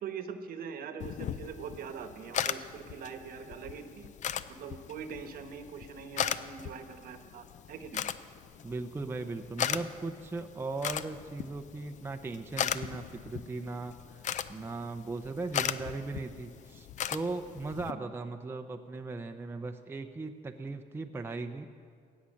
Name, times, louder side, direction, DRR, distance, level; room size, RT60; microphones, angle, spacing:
voice 1, 0.0-4.1 4.5-8.0 17.9-18.0, right 6 dB, 60° right, 8 dB, 1.1 m, -42 dB
sound 1, 1.0-17.9, left 9 dB, 45° left, 0.5 m, -38 dB
voice 2, 8.6-21.7, right 3 dB, 15° right, 5 dB, 0.6 m, -38 dB
17.5 x 7.2 x 6.4 m, 2.2 s
cardioid pair, 110°, 17 cm